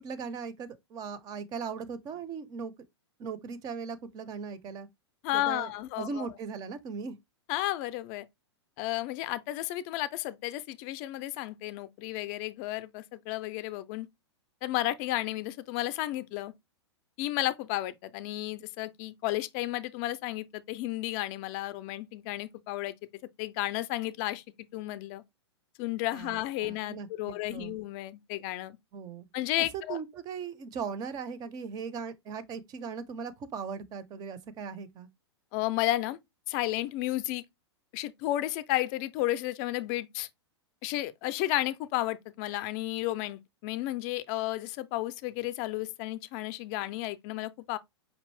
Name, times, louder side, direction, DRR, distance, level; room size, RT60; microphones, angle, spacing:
voice 1, 0.0-2.7 3.2-4.9 5.3-5.7 6.0-7.2 26.1-27.8 28.9-29.3 29.6-35.1, right 5 dB, 25° right, 0.5 m, -38 dB
voice 2, 5.2-6.3 7.5-8.3 8.8-14.1 14.6-16.5 17.2-22.9 23.4-24.4 24.7-25.2 25.8-28.8 29.3-30.0 35.5-36.2 36.5-37.4 37.9-40.3 40.8-47.8, left 16 dB, 35° left, 0.4 m, -32 dB
5.3 x 2.5 x 3.1 m
figure-of-eight pair, 105°, 15 cm